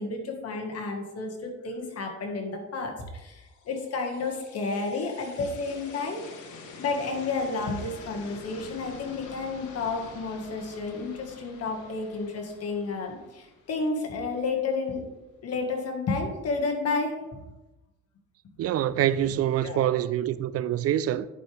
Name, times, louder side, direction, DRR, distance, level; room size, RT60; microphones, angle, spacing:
voice 1, 0.0-6.5 6.8-15.0 15.4-17.1 19.6-19.9, left 3 dB, 55° left, 1.7 m, -31 dB
sound 1, 3.4-14.4, left 4 dB, 80° left, 1.3 m, -47 dB
voice 2, 18.6-21.3, right 11 dB, 55° right, 0.4 m, -25 dB
10.5 x 4.8 x 3.4 m
cardioid pair, 95°, 29 cm